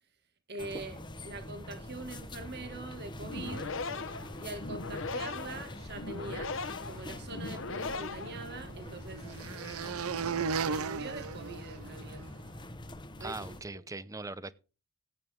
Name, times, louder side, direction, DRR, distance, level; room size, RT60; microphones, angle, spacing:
voice 1, 0.5-3.8 4.4-6.5 6.8-9.2 9.8-12.2 13.2-13.6, right 3 dB, 50° right, 2.1 m, -44 dB
sound 1, 0.6-13.6, left 1 dB, 20° left, 1.1 m, -45 dB
sound 2, 3.2-8.9, left 3 dB, 60° left, 1.1 m, -39 dB
sound 3, 7.7-12.3, right 6 dB, 85° right, 0.6 m, -36 dB
voice 2, 13.2-14.5, right 3 dB, 15° right, 0.6 m, -40 dB
16.0 x 9.0 x 3.6 m
head